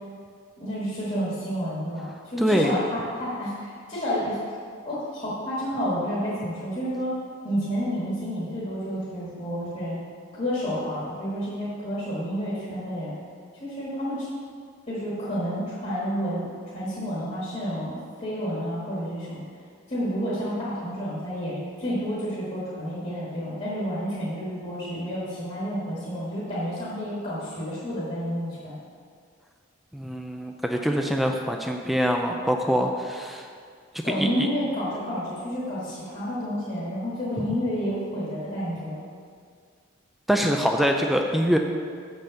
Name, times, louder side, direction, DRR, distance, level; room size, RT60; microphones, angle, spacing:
voice 1, 0.6-4.4 4.8-7.1 7.4-10.0 10.3-13.1 13.6-14.3 14.9-16.5 16.7-19.4 19.9-28.8 34.0-39.0, equal, 35° left, -9 dB, 1.7 m, -30 dB
voice 2, 2.4-2.7 29.9-33.5 34.2-34.5 40.3-41.6, equal, ahead, 2 dB, 0.4 m, -24 dB
7.3 x 5.5 x 6.3 m, 2.1 s
head